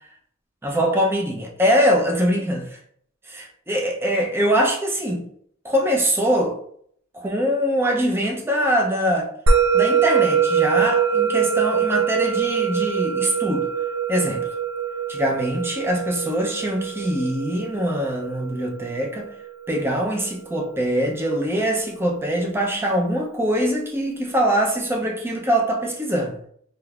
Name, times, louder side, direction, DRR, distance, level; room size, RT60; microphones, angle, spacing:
voice 1, 0.6-2.6 3.3-5.3 5.6-6.6 7.1-9.3 9.7-13.7 14.1-14.4 15.1-19.3 19.7-26.4, equal, 10° right, 0 dB, 0.5 m, -23 dB
Musical instrument, 9.5-20.1, right 6 dB, 85° right, 0.4 m, -23 dB
3.6 x 2.7 x 2.3 m, 0.63 s
head